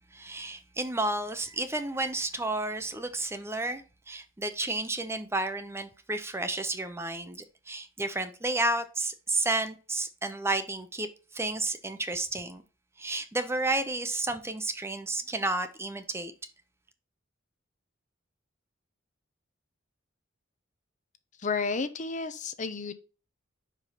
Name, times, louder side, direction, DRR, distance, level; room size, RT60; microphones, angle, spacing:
voice 1, 0.1-11.1 11.3-12.6 13.0-16.3, right 2 dB, 15° right, 0.6 m, -31 dB
voice 2, 21.4-22.9, left 4 dB, 40° left, 0.7 m, -31 dB
5.3 x 5.0 x 5.7 m
head